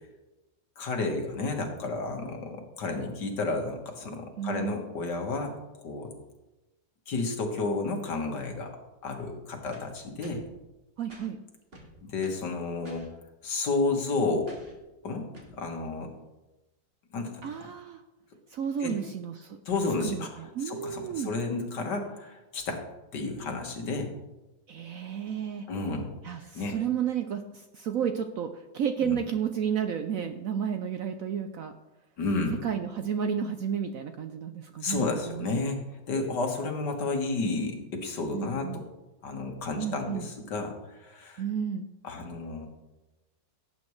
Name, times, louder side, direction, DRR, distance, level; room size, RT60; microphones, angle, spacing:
voice 1, 0.8-5.5 5.8-6.1 7.1-8.7 9.0-10.4 12.0-13.1 13.4-14.5 15.0-16.1 17.1-17.4 18.8-19.0 19.7-20.4 20.7-22.8 23.1-24.1 25.7-26.1 26.6-26.8 29.0-29.2 32.2-32.7 34.8-35.8 36.1-38.9 39.2-41.4 42.0-42.7, left 3 dB, 65° left, 3 dB, 2.1 m, -31 dB
voice 2, 4.4-4.8 11.0-11.4 17.4-18.0 18.5-19.6 20.0-21.3 24.7-25.7 26.2-31.7 32.6-35.6 38.3-38.8 39.8-40.3 41.4-41.9, right 8 dB, 70° right, 7 dB, 0.8 m, -32 dB
sound 1, 9.7-10.5 11.1-11.3 11.7-12.5 12.8-13.1 14.5-14.8 15.3-15.6, right 1 dB, 35° right, 1.9 m, -50 dB
17.5 x 8.4 x 3.2 m, 1.0 s
omnidirectional pair, 2.0 m